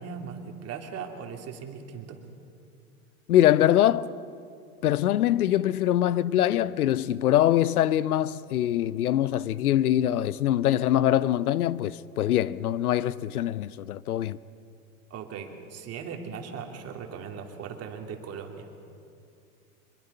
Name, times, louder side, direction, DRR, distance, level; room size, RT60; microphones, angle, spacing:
voice 1, 0.0-2.2 15.1-18.7, right 6 dB, 35° right, 2.9 m, -38 dB
voice 2, 3.3-4.1 4.8-14.4, left 12 dB, 85° left, 0.7 m, -23 dB
24.5 x 22.0 x 5.5 m
hypercardioid pair, 105°, 43 cm